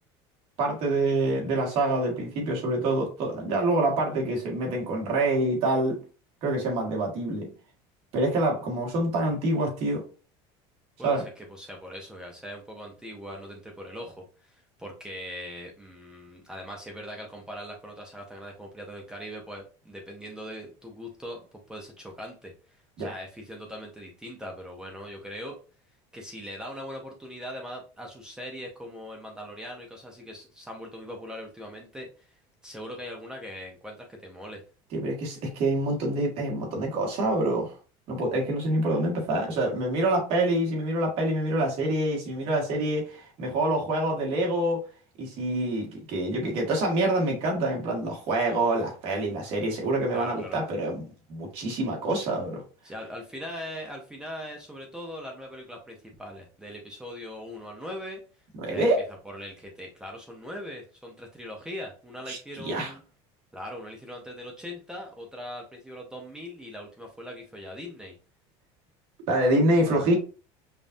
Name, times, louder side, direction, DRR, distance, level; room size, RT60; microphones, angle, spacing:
voice 1, 0.6-6.0 6.4-7.5 8.1-10.0 11.0-11.2 23.0-23.1 34.9-37.7 38.1-44.8 45.2-52.6 58.6-59.0 62.3-62.4 62.6-62.9 69.3-70.1, right 1 dB, 50° right, 1.8 m, -26 dB
voice 2, 11.0-25.6 26.1-32.3 32.6-34.6 50.1-50.6 52.8-58.2 58.7-58.9 59.2-63.0 63.5-68.1 69.9-70.1, equal, 5° right, 0.6 m, -40 dB
5.3 x 2.5 x 2.6 m
cardioid pair, 165°, 13 cm